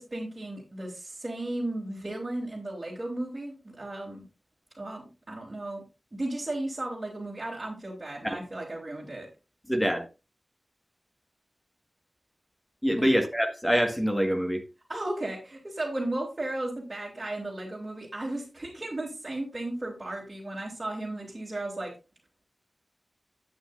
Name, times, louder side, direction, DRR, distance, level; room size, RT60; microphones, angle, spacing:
voice 1, 0.0-4.2 4.7-5.8 6.1-9.3 14.9-21.9, right 1 dB, 30° right, 2.9 m, -35 dB
voice 2, 9.7-10.1 12.8-14.6, equal, 5° left, 1.8 m, -25 dB
11.5 x 8.0 x 2.6 m
wide cardioid pair, 95°, 0 cm